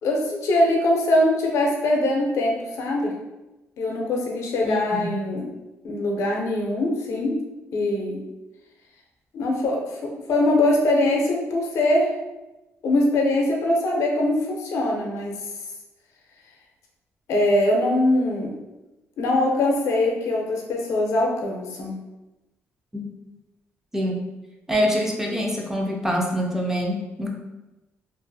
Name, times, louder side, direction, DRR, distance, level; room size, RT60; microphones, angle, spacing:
voice 1, 0.0-3.1 3.8-5.4 5.8-7.3 7.7-8.2 9.3-12.1 12.8-15.3 17.3-18.5 19.2-21.9, left 1 dB, 80° left, 0 dB, 0.5 m, -22 dB
voice 2, 4.6-5.2 22.9-23.0 23.9-24.3 24.7-27.3, equal, 10° right, -1 dB, 0.3 m, -25 dB
2.6 x 2.4 x 2.3 m, 1.0 s
cardioid pair, 160°, 5 cm